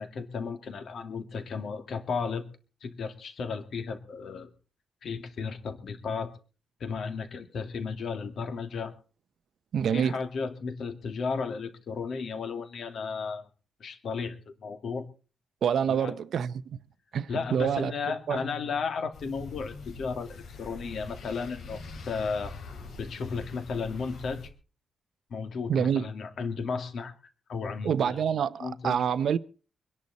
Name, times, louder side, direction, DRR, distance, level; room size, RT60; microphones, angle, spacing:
voice 1, 0.0-2.5 2.8-4.5 5.0-6.3 6.8-8.9 9.9-13.5 13.8-15.1 15.9-16.1 17.3-22.5 23.0-24.4 25.3-27.1 27.5-28.2 28.6-29.0, left 5 dB, 60° left, 2.4 m, -34 dB
voice 2, 9.7-10.2 15.6-16.5 17.1-17.9 18.3-18.4 25.7-26.0 27.8-29.4, right 8 dB, 65° right, 0.7 m, -26 dB
sound 1, 19.1-24.5, left 3 dB, 75° left, 3.2 m, -43 dB
24.5 x 10.5 x 4.2 m
wide cardioid pair, 175°, 0 cm